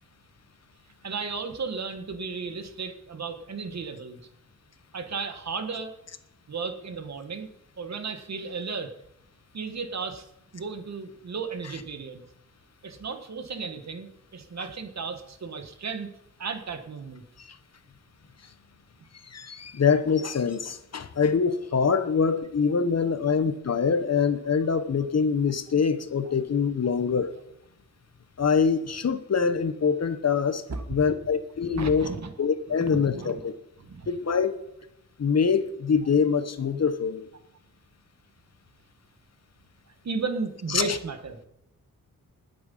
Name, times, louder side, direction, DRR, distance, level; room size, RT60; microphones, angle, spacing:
voice 1, 1.0-4.3 4.9-5.9 6.5-7.5 7.8-8.9 9.5-10.3 10.5-12.2 12.8-16.1 16.4-17.2 23.1-23.2 26.2-26.3 30.7-30.8 31.7-32.3 32.8-33.4 33.8-34.1 40.0-41.4, right 4 dB, 50° right, 7 dB, 1.6 m, -34 dB
voice 2, 19.2-27.3 28.4-30.6 30.9-32.1 32.4-33.5 34.1-34.6 35.2-37.3 40.7-41.0, left 6 dB, 50° left, 11 dB, 1.1 m, -24 dB
20.5 x 7.8 x 5.5 m, 0.84 s
wide cardioid pair, 155°, 34 cm